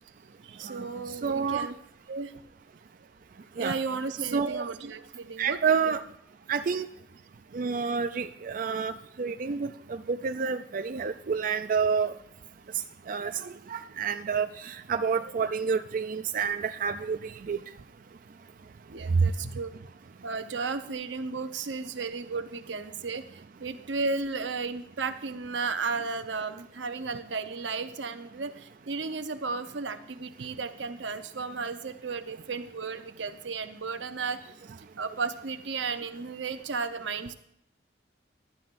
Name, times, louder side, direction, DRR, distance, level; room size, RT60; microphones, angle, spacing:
voice 1, 0.4-1.8 2.1-2.3 3.6-5.6 18.9-19.7 20.2-37.3, right 4 dB, 85° right, 9 dB, 0.8 m, -34 dB
voice 2, 1.2-1.7 3.6-3.8 4.3-4.6 5.4-6.0 6.5-6.9 7.5-8.9 9.2-9.7 10.1-12.1 13.1-17.2 17.5-17.6, right 6 dB, 50° right, 8 dB, 0.4 m, -28 dB
15.0 x 11.5 x 2.6 m, 0.75 s
head